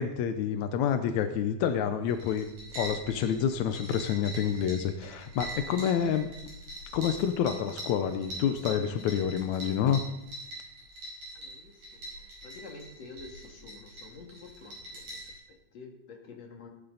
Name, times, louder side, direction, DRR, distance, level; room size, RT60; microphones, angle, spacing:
voice 1, 0.0-2.5 2.8-6.3 6.9-10.0, left 8 dB, 75° left, 8 dB, 1.7 m, -28 dB
sound 1, 2.0-15.4, right 1 dB, 80° right, 6.9 m, -43 dB
voice 2, 11.3-16.7, left 4 dB, 50° left, 1 dB, 3.2 m, -49 dB
19.0 x 15.5 x 4.1 m, 0.88 s
omnidirectional pair, 4.2 m